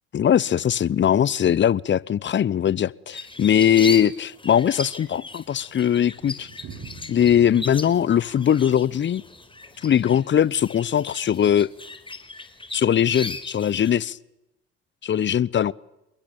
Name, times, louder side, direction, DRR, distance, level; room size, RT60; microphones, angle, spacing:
voice 1, 0.1-6.5 7.1-9.2 9.8-11.7 12.7-14.2 15.0-15.7, left 9 dB, 40° left, 1.0 m, -20 dB
sound 1, 3.1-13.9, left 3 dB, 15° left, 4.2 m, -38 dB
Thunder, 4.9-11.0 11.3-11.4 11.6-11.7 12.0-12.1 12.7-13.0, right 5 dB, 50° right, 5.7 m, -46 dB
28.5 x 22.5 x 8.9 m
hypercardioid pair, 65°, 30 cm